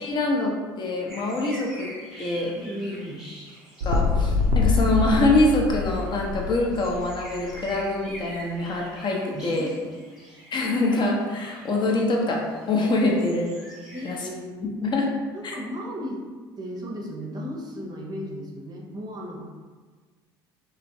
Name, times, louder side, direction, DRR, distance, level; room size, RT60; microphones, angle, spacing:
voice 1, 0.0-1.9 2.2-2.5 3.8-9.7 10.5-13.5 14.0-14.2 14.8-15.1, left 2 dB, 40° left, -1 dB, 0.7 m, -24 dB
sound 1, 1.1-14.1, right 1 dB, 5° right, 1.0 m, -46 dB
voice 2, 2.5-3.2 9.3-10.0 13.9-14.5 15.3-16.2 16.6-19.4, equal, 35° right, -1 dB, 0.6 m, -35 dB
sound 2, 3.8-7.6 8.1-8.2, left 4 dB, 80° right, 0.4 m, -24 dB
3.2 x 2.0 x 2.7 m, 1.4 s
hypercardioid pair, 70°, 12 cm